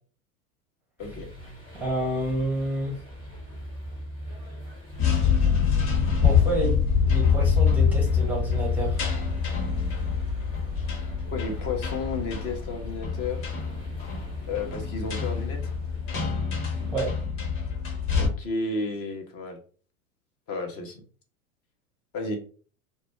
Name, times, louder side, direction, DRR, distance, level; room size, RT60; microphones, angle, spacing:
sound 1, 1.0-17.2, equal, 10° left, 1.0 m, -42 dB
voice 1, 1.7-3.0 6.2-9.0 16.9-17.1, right 1 dB, 5° right, -3 dB, 0.6 m, -29 dB
sound 2, 4.9-18.3, left 6 dB, 50° left, 1.1 m, -25 dB
voice 2, 11.3-13.5 14.4-15.7 18.1-19.6 20.5-21.0 22.1-22.4, left 3 dB, 35° left, 3 dB, 0.6 m, -32 dB
2.1 x 2.1 x 3.0 m, 0.41 s
figure-of-eight pair, 90°, 42 cm